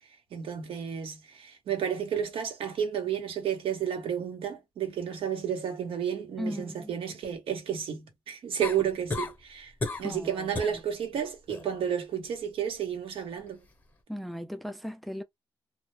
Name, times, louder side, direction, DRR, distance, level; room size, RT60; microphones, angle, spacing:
voice 1, 0.3-9.7 10.0-13.6, right 8 dB, 80° right, 0.8 m, -32 dB
voice 2, 6.4-6.9 10.0-10.8 14.1-15.2, equal, ahead, 0.3 m, -37 dB
sound 1, 8.6-9.4 9.8-10.2 10.5-10.8 11.2-11.7 13.5-13.6, left 3 dB, 20° left, 0.7 m, -33 dB
2.1 x 2.0 x 3.0 m
cardioid pair, 100°, 9 cm